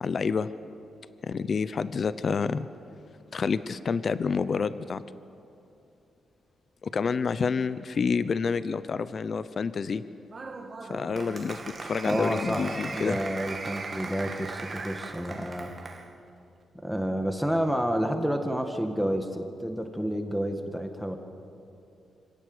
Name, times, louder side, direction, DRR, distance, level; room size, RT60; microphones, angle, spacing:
voice 1, 0.0-0.5 1.2-2.7 3.3-5.0 6.8-10.0 10.9-13.2, left 5 dB, 50° left, 14 dB, 0.7 m, -28 dB
Applause, 10.3-16.1, right 3 dB, 40° right, 2.3 m, -38 dB
voice 2, 12.0-12.6 12.9-15.7 16.7-21.2, equal, ahead, 4 dB, 1.9 m, -29 dB
25.5 x 17.0 x 8.0 m, 2.7 s
cardioid pair, 85°, 0 cm